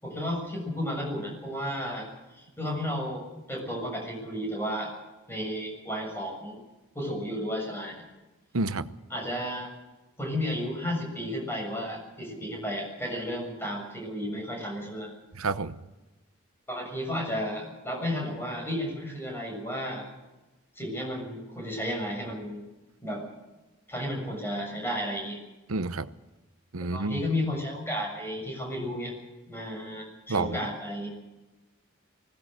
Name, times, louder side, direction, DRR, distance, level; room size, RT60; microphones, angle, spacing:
voice 1, 0.0-2.1 2.4-4.9 5.3-6.6 7.0-7.9 9.1-9.7 10.2-15.1 16.7-20.1 20.8-22.6 23.0-23.2 23.9-25.4 26.9-29.1 29.5-31.1, equal, 10° left, 0 dB, 7.0 m, -33 dB
voice 2, 8.5-8.9 15.4-15.7 25.7-26.1 26.7-27.2 30.3-30.6, right 3 dB, 80° right, 13 dB, 1.0 m, -29 dB
20.0 x 18.0 x 7.9 m, 1.1 s
head